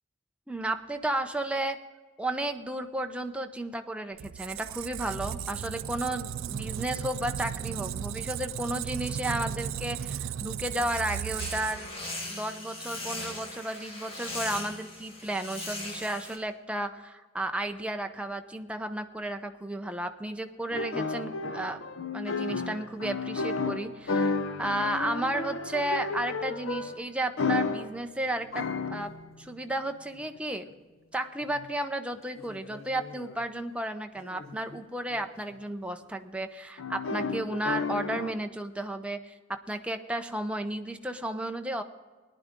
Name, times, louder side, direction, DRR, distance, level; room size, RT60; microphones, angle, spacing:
voice 1, 0.5-1.7 2.2-11.9 12.3-29.1 29.4-30.7 31.1-41.8, right 1 dB, 5° right, 5 dB, 0.6 m, -33 dB
Squeak, 4.2-12.0, right 9 dB, 75° right, 0.4 m, -35 dB
sound 1, 11.4-16.4, left 2 dB, 30° left, 2.3 m, -39 dB
sound 2, 20.7-27.1 27.4-28.0 28.4-29.6 30.1-30.7 31.4-31.7 32.4-33.5 34.2-34.8 35.1-35.3 35.5-35.6 36.8-38.3, left 4 dB, 75° left, 0.8 m, -33 dB
18.5 x 10.5 x 3.7 m, 1.4 s
head